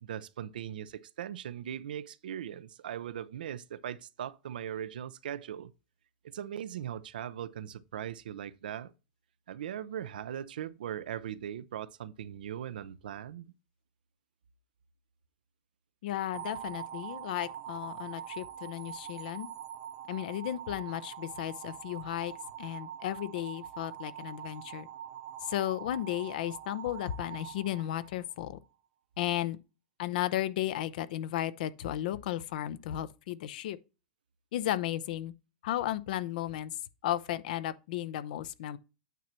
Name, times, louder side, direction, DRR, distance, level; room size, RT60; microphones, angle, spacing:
voice 1, 0.0-5.7 6.2-8.9 9.5-13.5, right 10 dB, 90° right, 0.5 m, -39 dB
voice 2, 16.0-19.5 20.1-22.3 22.6-24.9 25.4-28.6 29.2-29.6 30.0-33.8 34.5-35.3 35.6-36.7 37.0-38.8, left 13 dB, 75° left, 0.6 m, -34 dB
sound 1, 16.3-28.5, right 11 dB, 65° right, 1.1 m, -44 dB
9.1 x 3.1 x 5.8 m
supercardioid pair, 120°, 5 cm